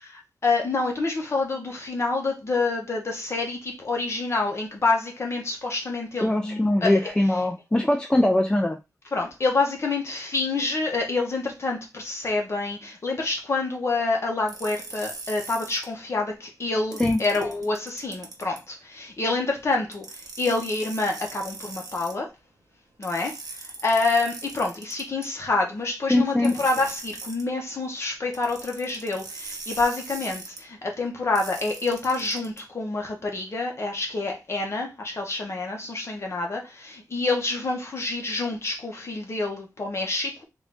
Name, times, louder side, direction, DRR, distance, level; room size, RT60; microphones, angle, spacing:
voice 1, 0.4-7.4 9.1-22.3 23.0-40.4, left 3 dB, 45° left, 1.0 m, -27 dB
voice 2, 6.2-8.8 17.0-17.2 26.1-26.6, left 1 dB, 15° left, 0.4 m, -22 dB
sound 1, 14.5-15.8 16.9-18.6 19.9-22.1 23.0-25.3 26.4-27.4 28.3-30.6 31.3-32.6, right 3 dB, 90° right, 0.9 m, -40 dB
3.6 x 2.5 x 3.5 m
wide cardioid pair, 150°, 7 cm